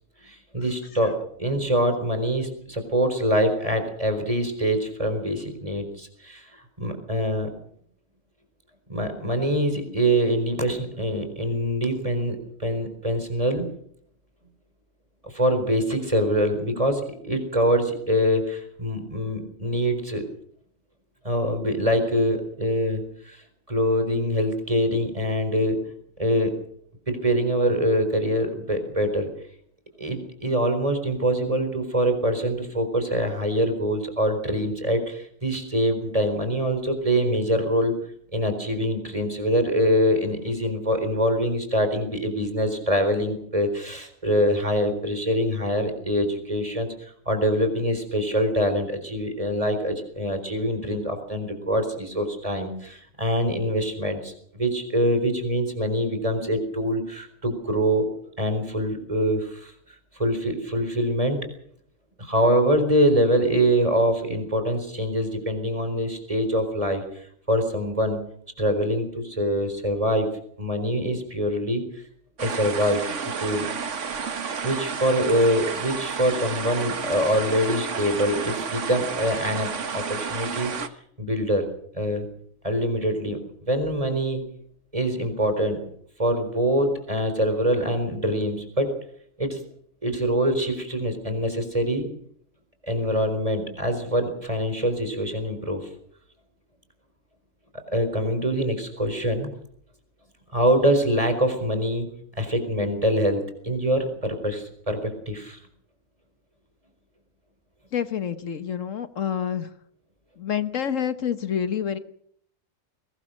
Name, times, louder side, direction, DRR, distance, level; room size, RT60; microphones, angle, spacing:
voice 1, 0.2-7.5 8.9-13.6 15.2-20.2 21.2-23.4 23.7-25.8 26.2-26.5 27.1-29.3 30.0-37.9 38.3-58.1 58.4-59.7 60.2-61.4 62.2-68.2 68.6-70.3 70.6-72.0 72.4-73.7 74.6-80.7 81.2-81.6 81.9-82.3 82.6-84.4 84.9-85.8 86.2-88.9 89.4-89.6 90.0-92.1 92.8-95.9 97.9-99.5 100.5-102.1 102.4-105.6, equal, 25° right, 7 dB, 4.3 m, -24 dB
sound 1, 72.4-80.9, right 6 dB, 65° right, 1.6 m, -31 dB
voice 2, 107.9-109.7 110.4-112.0, left 8 dB, 75° left, 11 dB, 1.5 m, -27 dB
22.0 x 19.5 x 6.5 m, 0.66 s
omnidirectional pair, 1.4 m